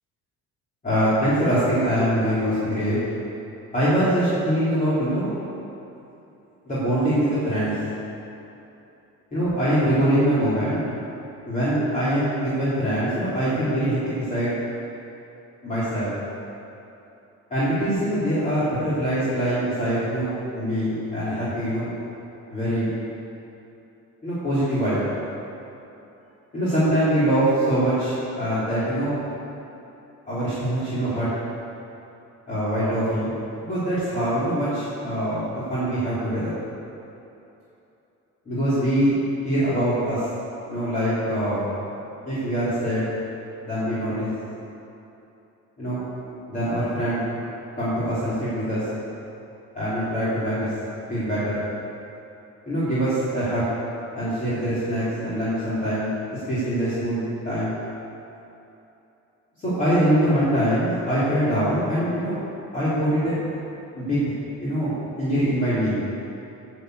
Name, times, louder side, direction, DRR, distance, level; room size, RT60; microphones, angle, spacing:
voice 1, 0.8-3.0 3.7-5.3 6.6-7.8 9.3-10.8 11.5-14.5 15.6-16.1 17.5-21.9 22.5-22.9 24.2-25.1 26.5-29.2 30.3-31.3 32.5-33.3 33.7-35.4 35.7-36.5 38.5-39.2 39.4-40.3 40.7-41.7 42.3-43.1 43.6-44.3 45.8-46.0 46.5-47.3 47.8-48.8 49.7-50.7 51.1-51.6 52.7-53.7 54.2-56.1 56.5-57.7 59.6-62.4 62.7-63.4 63.9-64.3 64.6-66.0, equal, 25° left, -13 dB, 3.8 m, -23 dB
14.0 x 7.6 x 8.0 m, 2.9 s
cardioid pair, 170°, 31 cm